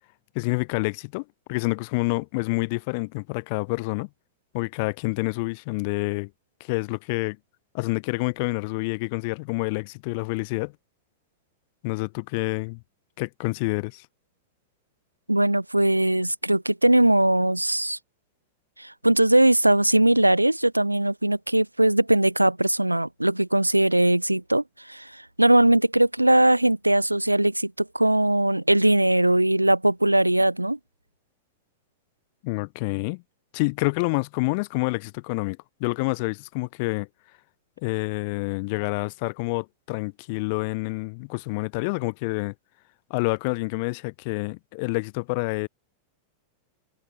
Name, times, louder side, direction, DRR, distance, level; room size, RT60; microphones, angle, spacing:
voice 1, 0.3-4.1 4.5-6.3 6.6-7.4 7.7-10.7 11.8-12.8 13.2-14.1 32.4-33.2 33.5-37.1 37.8-42.5 43.1-45.7, left 29 dB, 45° left, 0.6 m, -28 dB
voice 2, 15.3-18.0 18.8-25.1 25.4-30.8, right 1 dB, 85° right, 0.3 m, -20 dB
figure-of-eight pair, 90°, 0 cm